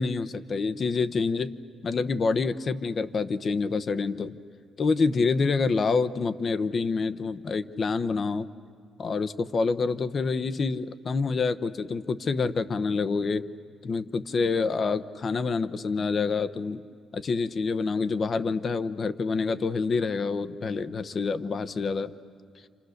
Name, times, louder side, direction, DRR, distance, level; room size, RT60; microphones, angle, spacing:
voice 1, 0.0-1.5 1.8-4.4 4.8-8.5 9.0-13.5 13.8-16.8 17.1-22.1, left 4 dB, 45° left, 13 dB, 0.9 m, -27 dB
29.5 x 27.5 x 6.6 m, 2.3 s
cardioid pair, 90°, 0 cm